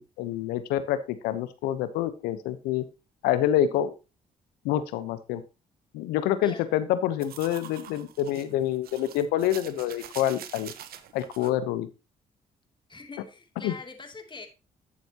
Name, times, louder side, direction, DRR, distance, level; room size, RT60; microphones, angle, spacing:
voice 1, 0.0-2.9 3.2-3.9 4.6-5.4 5.9-10.7 11.1-11.9 13.6-13.7, left 11 dB, 90° left, 13 dB, 1.0 m, -27 dB
voice 2, 6.4-6.7 12.9-14.5, left 4 dB, 30° left, 4 dB, 2.9 m, -43 dB
sound 1, 7.2-11.5, right 10 dB, 75° right, 1.1 m, -45 dB
11.5 x 7.1 x 3.0 m, 0.28 s
supercardioid pair, 60°, 16 cm